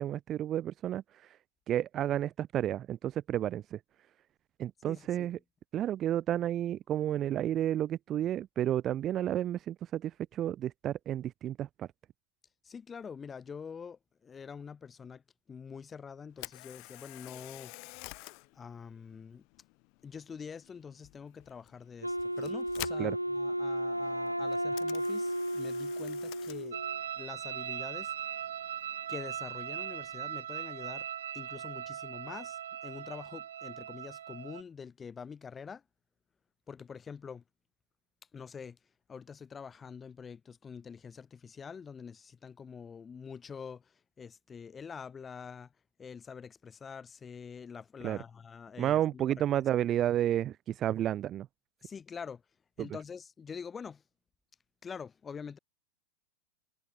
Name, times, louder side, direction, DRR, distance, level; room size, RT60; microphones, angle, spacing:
voice 1, 0.0-1.4 1.7-3.8 4.6-5.4 5.7-11.9 23.0-23.2 48.0-48.2 48.8-51.5 52.8-52.9, right 11 dB, 30° right, 0.4 m, -31 dB
voice 2, 4.9-5.4 12.6-17.7 18.5-19.4 20.0-26.8 27.2-28.4 29.1-31.1 31.3-35.8 36.7-37.4 38.3-38.8 39.1-45.7 46.0-49.6 51.8-52.4 52.8-54.0 54.8-55.6, left 6 dB, 20° left, 3.1 m, -46 dB
Camera, 16.3-30.4, left 33 dB, 45° left, 2.8 m, -51 dB
Wind instrument woodwind instrument, 22.0-27.0, equal, 90° right, 1.4 m, -33 dB
sound 1, 26.7-34.6, right 10 dB, 65° right, 4.0 m, -39 dB
figure-of-eight pair, 90°, 0 cm